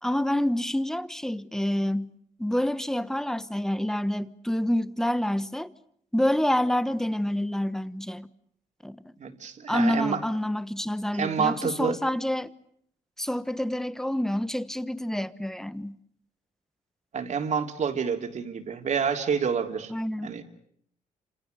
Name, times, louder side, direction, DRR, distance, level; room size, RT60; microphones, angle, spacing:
voice 1, 0.0-2.1 2.4-5.7 6.1-8.3 8.8-9.1 9.7-12.5 13.2-16.0 19.9-20.4, left 1 dB, 5° left, 1.3 m, -27 dB
voice 2, 9.2-10.2 11.1-12.0 17.1-19.9 20.2-20.4, right 6 dB, 55° right, 3.3 m, -28 dB
29.5 x 27.5 x 6.9 m
cardioid pair, 100°, 14 cm